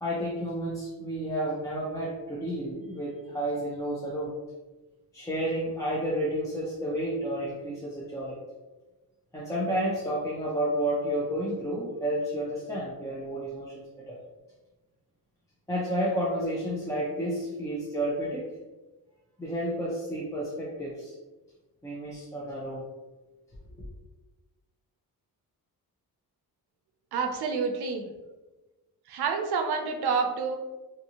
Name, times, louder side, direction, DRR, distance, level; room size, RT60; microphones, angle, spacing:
voice 1, 0.0-4.3 5.1-8.4 9.3-14.2 15.7-18.5 19.4-21.1 21.8-22.8 23.8-23.9, right 1 dB, 10° left, -6 dB, 0.4 m, -31 dB
voice 2, 27.1-28.1 29.1-30.6, right 5 dB, 85° right, 4 dB, 0.6 m, -28 dB
2.7 x 2.6 x 2.8 m, 1.2 s
cardioid pair, 130°, 38 cm